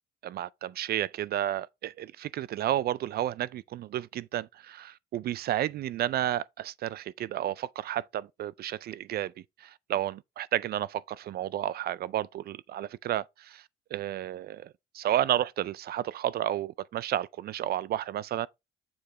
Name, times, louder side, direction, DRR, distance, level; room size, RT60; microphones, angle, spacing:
voice 1, 0.2-9.3 9.6-13.6 13.9-14.7 14.9-18.5, right 12 dB, 50° right, 0.4 m, -31 dB
7.0 x 4.8 x 3.3 m
cardioid pair, 95°, 20 cm